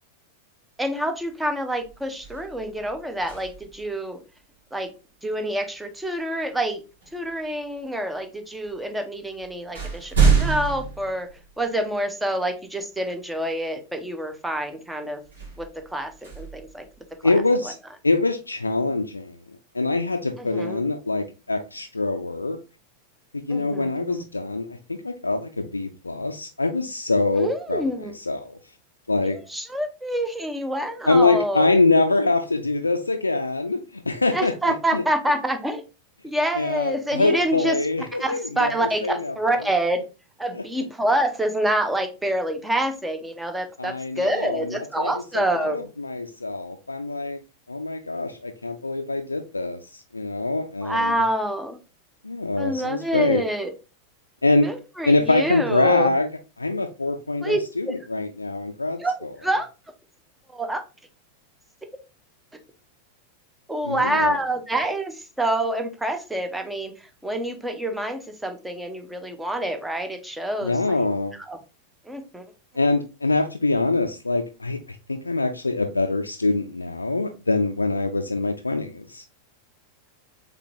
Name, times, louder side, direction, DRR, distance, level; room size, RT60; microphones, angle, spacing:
voice 1, 0.8-4.2 4.7-4.9 5.2-6.8 7.1-11.3 11.6-15.2 15.6-16.8 17.2-17.3 17.6-17.7 20.4-20.8 23.5-24.3 27.4-28.1 29.2-31.7 34.3-35.8 36.2-37.8 38.1-40.0 40.4-45.9 50.8-51.8 52.6-53.7 54.6-56.1 57.4-57.6 57.9-58.0 59.0-59.7 60.5-60.8 63.7-71.1 71.5-71.6 72.1-72.4, right 1 dB, 5° right, 0.7 m, -27 dB
sound 1, 1.2-1.4 1.8-3.9 6.0-6.2 7.0-7.8 8.7-8.8 9.2-12.0 12.5-12.6 15.2-17.4, right 5 dB, 65° right, 1.4 m, -27 dB
voice 2, 17.2-17.7 18.0-19.3 19.7-22.6 23.3-28.6 29.1-29.4 31.1-34.5 34.9-35.0 36.5-39.6 40.5-40.6 43.8-47.4 47.7-51.1 52.2-53.4 54.4-54.7 55.0-56.3 56.6-59.0 63.8-64.4 70.6-71.3 72.7-79.2, left 3 dB, 80° left, 0.3 m, -24 dB
3.7 x 3.4 x 3.0 m
figure-of-eight pair, 90°, 0 cm